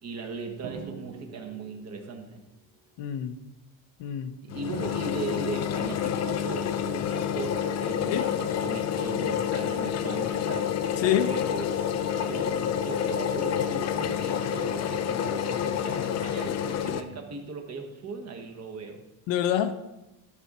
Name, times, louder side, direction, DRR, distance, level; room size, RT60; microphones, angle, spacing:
voice 1, 0.0-2.4 4.4-11.7 12.2-19.1, right 4 dB, 35° right, 4 dB, 1.1 m, -38 dB
Drum, 0.6-2.3, right 6 dB, 90° right, 1.5 m, -44 dB
voice 2, 3.0-3.4 4.0-4.3 8.1-8.3 11.0-11.3 19.3-19.7, left 10 dB, 70° left, 10 dB, 0.8 m, -26 dB
sound 1, 4.5-17.0, left 9 dB, 35° left, 0.4 m, -28 dB
11.5 x 4.8 x 4.1 m, 0.98 s
cardioid pair, 145°, 46 cm